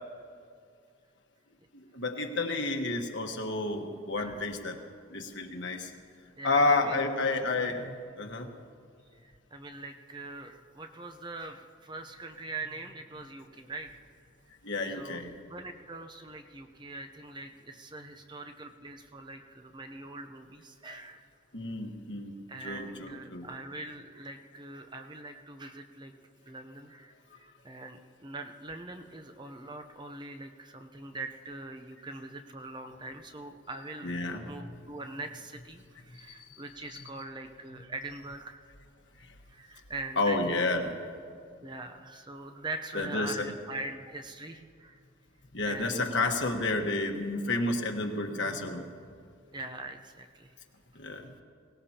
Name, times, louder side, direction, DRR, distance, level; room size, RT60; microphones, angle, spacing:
voice 1, 1.7-4.8 5.1-5.9 6.4-7.9 8.2-8.5 14.6-15.3 21.5-22.4 22.6-23.5 34.0-34.4 39.2-39.3 40.2-40.9 42.9-43.5 45.5-48.8 50.9-51.3, left 2 dB, 60° left, 3 dB, 1.4 m, -30 dB
voice 2, 6.4-7.0 9.2-14.0 14.9-15.2 15.5-21.2 22.5-26.1 26.4-38.6 39.5-40.6 41.6-45.0 45.6-46.3 46.7-46.8 49.5-50.5 50.9-51.0, right 2 dB, 20° right, 6 dB, 0.7 m, -42 dB
23.0 x 18.0 x 2.9 m, 2.2 s
head